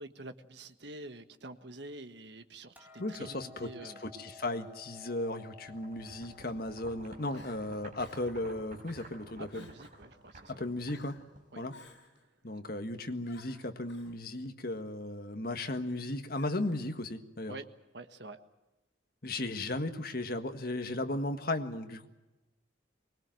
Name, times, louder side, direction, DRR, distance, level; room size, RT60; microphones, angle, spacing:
voice 1, 0.0-4.0 7.3-7.4 9.4-10.7 11.5-11.6 17.5-17.6 17.9-18.4, right 2 dB, 65° right, 9 dB, 1.5 m, -47 dB
Hammer, 2.8-9.0, left 3 dB, 10° right, 2.3 m, -55 dB
voice 2, 3.0-9.7 10.5-11.2 11.6-11.7 12.4-17.6 19.2-22.1, left 2 dB, 50° left, 7 dB, 1.7 m, -36 dB
Crying sobbing, 4.5-4.8 6.0-6.6 7.0-7.1 7.3-7.6 8.0-8.4 8.9-9.2 9.5-10.0 10.9-11.3 11.7-12.2 13.2-14.1 15.6-16.0 16.3-16.9, left 3 dB, 65° left, 6.0 m, -58 dB
sound 1, 5.7-11.8, right 1 dB, 45° right, 4.4 m, -53 dB
23.5 x 21.0 x 7.7 m, 1.1 s
head